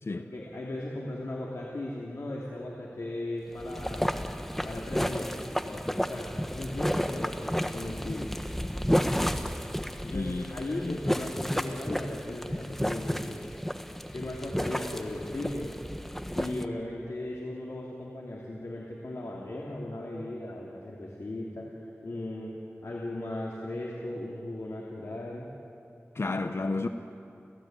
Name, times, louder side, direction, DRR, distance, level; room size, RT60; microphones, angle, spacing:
voice 1, 0.1-4.2 4.6-8.3 10.0-13.5 14.1-15.8 16.3-25.5, left 1 dB, 90° left, -3 dB, 3.0 m, -37 dB
sound 1, 3.5-16.7, equal, 5° left, 1.2 m, -32 dB
voice 2, 10.1-10.5 10.8-11.0 26.1-26.9, left 3 dB, 65° left, 8 dB, 0.9 m, -31 dB
29.5 x 15.5 x 9.2 m, 2.8 s
wide cardioid pair, 60°, 5 cm